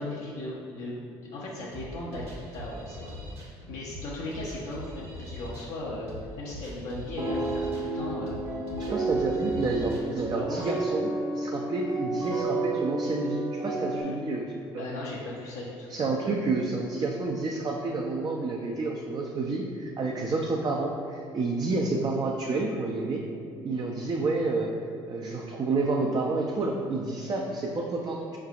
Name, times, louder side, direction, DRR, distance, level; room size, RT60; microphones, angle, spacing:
voice 1, 0.0-3.2 3.7-8.4 10.3-10.8 14.8-16.1, left 2 dB, 65° left, -5 dB, 0.6 m, -37 dB
sound 1, 1.7-10.3, left 1 dB, 50° right, 1.2 m, -42 dB
sound 2, 7.2-14.0, right 2 dB, 75° right, 1.3 m, -31 dB
voice 2, 8.9-14.9 15.9-23.2 23.6-24.7 25.1-28.4, right 3 dB, 35° right, 0 dB, 0.4 m, -29 dB
4.6 x 3.2 x 2.4 m, 2.3 s
hypercardioid pair, 55°, 13 cm